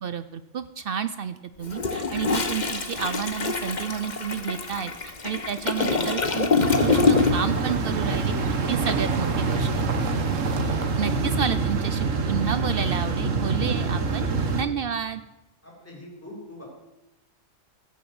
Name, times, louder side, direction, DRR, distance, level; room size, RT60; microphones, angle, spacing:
voice 1, 0.0-8.3 8.7-9.9 11.0-15.2, right 7 dB, 60° right, 12 dB, 0.7 m, -30 dB
Toilet flush, 1.6-7.6 7.9-8.1, left 4 dB, 40° left, 1.1 m, -25 dB
sound 1, 6.6-14.6, right 4 dB, 80° right, 1.6 m, -25 dB
voice 2, 15.6-16.6, left 1 dB, 10° left, -3 dB, 3.9 m, -44 dB
15.0 x 7.1 x 7.9 m, 0.93 s
omnidirectional pair, 1.3 m